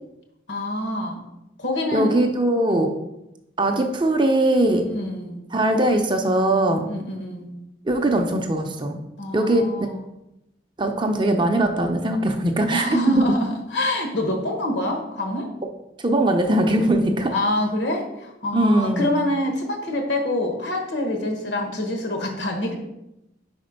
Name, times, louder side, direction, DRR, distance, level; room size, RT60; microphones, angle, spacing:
voice 1, 0.5-1.2 1.6-2.2 2.7-2.9 4.8-5.4 6.8-7.5 9.2-10.0 12.7-15.5 17.3-22.8, left 1 dB, 70° left, 2 dB, 1.2 m, -26 dB
voice 2, 1.9-2.9 3.6-4.9 5.5-6.8 7.9-9.0 9.3-9.7 10.8-13.2 16.0-17.3 18.5-19.1, right 1 dB, 25° right, 4 dB, 0.5 m, -20 dB
5.0 x 4.3 x 5.1 m, 0.90 s
head